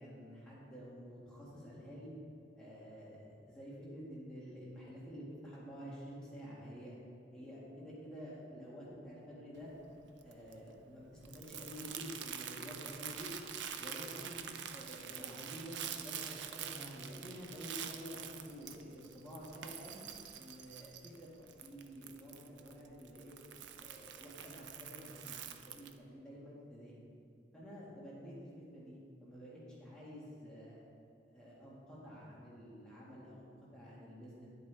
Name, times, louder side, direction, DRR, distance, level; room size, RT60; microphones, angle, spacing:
voice 1, 0.0-2.1 2.6-7.0 7.3-9.7 10.2-13.3 13.8-20.0 20.3-23.4 23.8-27.1 27.5-30.8 31.3-34.5, equal, 5° left, -8 dB, 1.8 m, -50 dB
Crumpling crinkling, 9.5-26.0, right 8 dB, 80° right, 0.5 m, -47 dB
10.0 x 8.1 x 3.4 m, 2.4 s
head